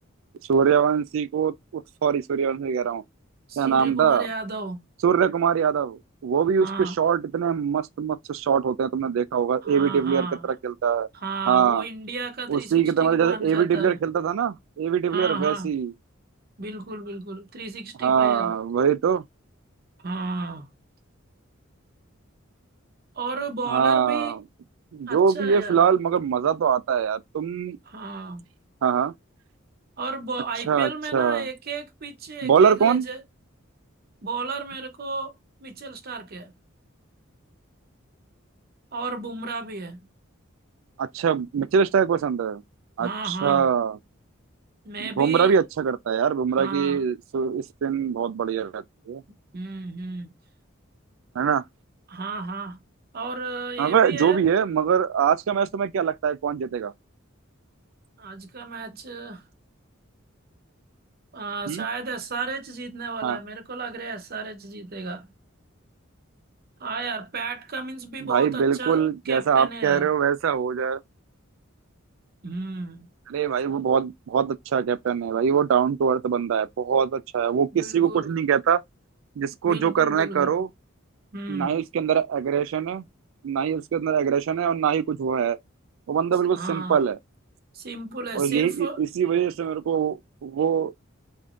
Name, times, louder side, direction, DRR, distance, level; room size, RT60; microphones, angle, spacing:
voice 1, 0.5-3.0 3.6-4.3 5.0-11.1 11.5-11.9 12.5-15.9 18.0-19.2 23.7-24.4 24.9-27.8 28.8-29.1 30.7-31.5 32.4-33.0 41.0-42.6 43.0-44.0 45.0-49.2 51.4-51.6 53.8-56.9 61.7-61.9 63.2-63.4 68.2-71.0 73.3-78.8 79.4-80.7 81.5-83.0 83.4-85.6 86.1-87.2 88.3-91.1, right 7 dB, 70° right, 0.3 m, -23 dB
voice 2, 3.5-4.8 6.6-7.0 9.6-10.5 11.1-14.0 15.1-15.7 16.6-18.5 20.0-20.7 23.1-24.4 25.1-25.8 27.9-28.4 30.0-33.2 34.2-35.3 35.6-36.5 38.9-40.0 43.0-43.7 44.8-45.5 46.6-47.0 49.5-50.3 52.1-52.8 53.1-54.4 58.2-59.4 61.3-65.3 66.8-70.1 72.4-73.1 77.7-78.3 79.6-80.5 81.3-81.8 86.4-87.0 87.7-89.0, right 3 dB, 50° right, 0.7 m, -33 dB
3.5 x 2.6 x 2.4 m
head